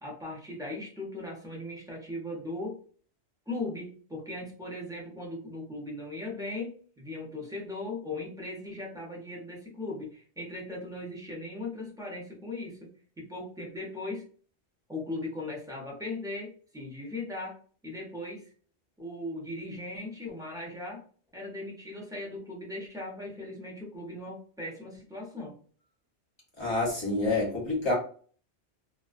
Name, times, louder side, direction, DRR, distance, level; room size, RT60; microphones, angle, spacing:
voice 1, 0.0-2.8 3.5-14.3 14.9-17.6 17.8-18.5 19.0-21.0 21.3-25.5, left 2 dB, 5° right, 0.5 m, -38 dB
voice 2, 26.6-27.9, left 2 dB, 25° left, 0.7 m, -28 dB
2.3 x 2.2 x 2.4 m
omnidirectional pair, 1.2 m